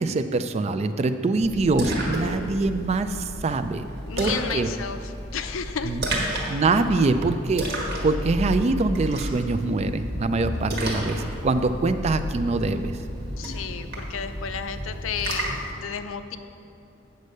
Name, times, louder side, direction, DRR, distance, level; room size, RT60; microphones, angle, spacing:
voice 1, 0.0-3.9 4.2-4.7 5.8-6.0 6.5-13.0, right 3 dB, 30° right, 10 dB, 0.3 m, -24 dB
Splash splatter, 1.4-15.7, right 1 dB, 55° right, 1.5 m, -32 dB
voice 2, 4.1-5.0 5.3-6.4 13.4-16.4, left 6 dB, 80° left, 9 dB, 0.5 m, -32 dB
8.0 x 5.3 x 6.5 m, 2.6 s
head